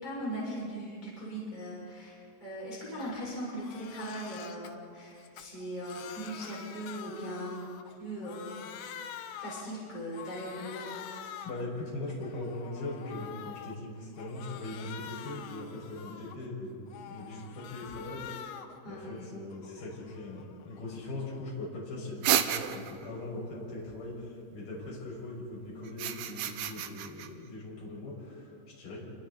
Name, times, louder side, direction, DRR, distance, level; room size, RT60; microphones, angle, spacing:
voice 1, 0.0-7.7 8.0-8.6 9.4-10.9 18.8-19.2, equal, 10° left, -7 dB, 6.1 m, -39 dB
Crying sobbing, 3.0-3.2 3.5-4.7 5.2-8.0 8.2-9.8 10.1-11.7 12.1-13.8 14.2-16.5 16.9-18.8 19.2-21.6, left 9 dB, 85° left, 3.7 m, -46 dB
voice 2, 11.4-18.3 18.9-29.0, left 2 dB, 50° left, -6 dB, 8.1 m, -40 dB
sound 1, 22.2-23.1 25.9-27.3, right 10 dB, 75° right, 2.5 m, -30 dB
29.0 x 24.0 x 4.3 m, 2.3 s
omnidirectional pair, 5.6 m